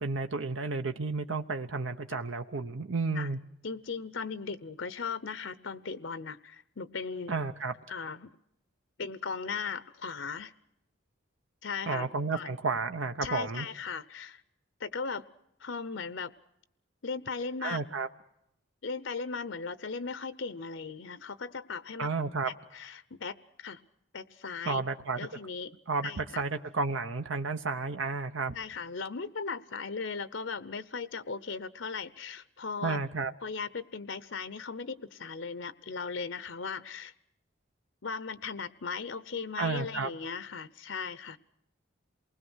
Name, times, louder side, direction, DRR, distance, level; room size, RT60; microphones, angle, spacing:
voice 1, 0.0-3.4 7.3-7.7 11.9-13.7 17.6-18.1 22.0-22.5 24.6-25.2 25.9-28.5 32.8-33.3 39.6-40.1, right 4 dB, 75° right, 7 dB, 0.9 m, -32 dB
voice 2, 3.6-7.3 7.9-8.3 9.0-10.5 11.6-12.1 12.3-12.5 13.2-14.4 14.8-15.2 15.6-16.3 17.0-17.8 18.8-22.1 22.5-23.8 24.1-24.8 25.2-25.7 26.0-26.4 28.5-33.0 33.4-37.1 38.0-41.4, left 5 dB, 65° left, 16 dB, 0.8 m, -37 dB
28.0 x 20.5 x 6.3 m, 0.78 s
head